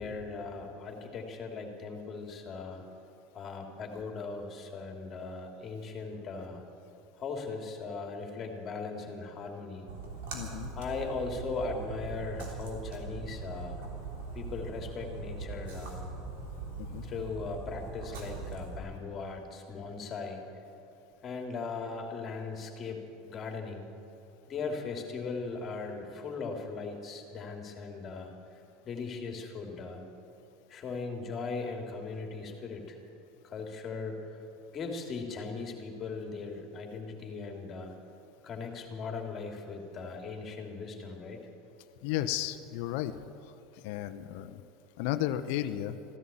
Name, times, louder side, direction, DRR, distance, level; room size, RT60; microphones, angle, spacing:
voice 1, 0.0-2.8 3.3-6.6 7.2-9.9 10.8-13.8 14.3-16.1 17.0-20.4 21.2-23.9 24.5-28.3 28.8-30.0 30.7-33.0 33.4-34.3 34.7-37.9 38.4-41.4, left 4 dB, 35° left, 3 dB, 2.6 m, -38 dB
Splash splatter, 9.9-18.8, right 3 dB, 80° right, 3.2 m, -41 dB
voice 2, 10.3-10.7 16.8-17.1 42.0-43.5 43.8-44.6 45.0-45.9, left 13 dB, 70° left, 10 dB, 0.7 m, -34 dB
15.0 x 11.0 x 8.6 m, 2.8 s
supercardioid pair, 105°, 0 cm